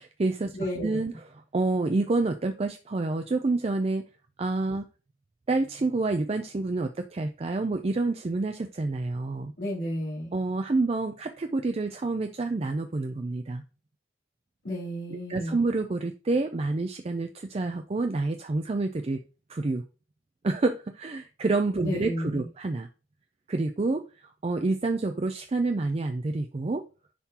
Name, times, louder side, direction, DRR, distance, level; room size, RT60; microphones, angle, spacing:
voice 1, 0.0-4.0 4.4-4.8 5.5-9.5 10.3-13.6 15.1-19.2 19.5-19.8 20.4-22.9 23.5-26.9, right 3 dB, 30° right, 6 dB, 0.4 m, -28 dB
voice 2, 0.5-1.0 9.6-10.3 14.6-15.6 21.8-22.5, equal, 70° left, -5 dB, 3.5 m, -32 dB
10.0 x 3.7 x 2.8 m, 0.33 s
head